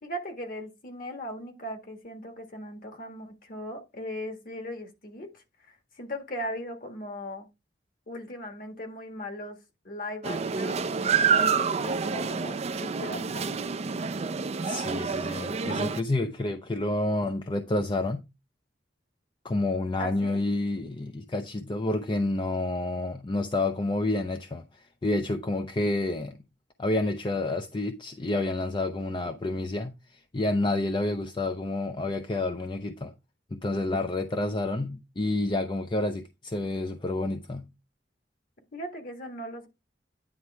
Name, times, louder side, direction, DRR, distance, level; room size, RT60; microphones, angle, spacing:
voice 1, 0.0-7.5 8.1-9.6 9.8-10.9 11.2-13.5 20.0-20.4 38.7-39.7, equal, 55° left, 1.7 m, -38 dB
sound 1, 10.2-16.0, right 6 dB, 35° right, 0.4 m, -28 dB
voice 2, 14.7-18.3 19.4-26.4 26.8-33.1 33.5-37.7, left 2 dB, 25° left, 0.5 m, -29 dB
9.6 x 3.2 x 4.6 m
head